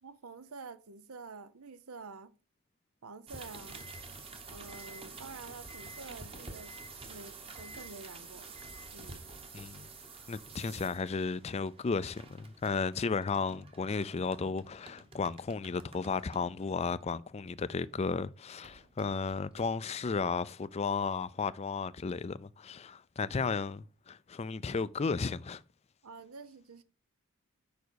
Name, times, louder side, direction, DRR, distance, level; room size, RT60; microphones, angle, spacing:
voice 1, 0.0-2.4 3.0-3.9 4.5-6.7 7.1-8.6 8.9-9.3 26.0-26.8, right 4 dB, 80° right, 0.7 m, -48 dB
sound 1, 3.3-18.1 18.6-20.1, right 3 dB, 25° right, 1.1 m, -49 dB
voice 2, 9.5-9.9 10.3-25.6, left 4 dB, 30° left, 0.4 m, -34 dB
7.0 x 5.2 x 6.3 m
head